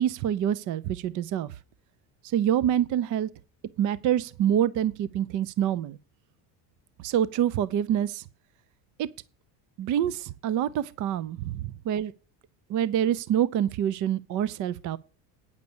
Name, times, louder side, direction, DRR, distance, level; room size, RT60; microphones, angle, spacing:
voice 1, 0.0-1.5 2.2-3.3 3.8-6.0 7.0-8.3 9.0-9.1 9.8-12.1 12.7-15.0, right 10 dB, 45° right, 0.5 m, -26 dB
9.4 x 6.7 x 6.9 m
cardioid pair, 135°, 42 cm